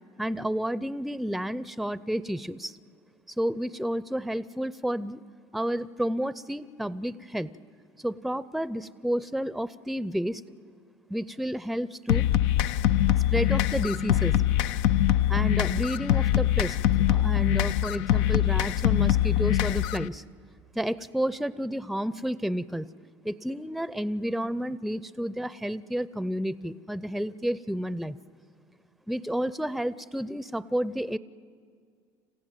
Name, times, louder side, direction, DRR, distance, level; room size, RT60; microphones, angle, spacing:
voice 1, 0.2-2.8 3.4-5.2 5.5-7.5 8.0-10.4 11.1-12.3 13.3-14.3 15.3-16.8 17.1-20.2 20.7-22.9 23.2-28.2 29.1-31.2, equal, ahead, 17 dB, 0.5 m, -31 dB
sound 1, 12.1-20.1, left 12 dB, 80° left, 0.5 m, -23 dB
27.0 x 15.0 x 9.1 m, 2.1 s
supercardioid pair, 80°, 16 cm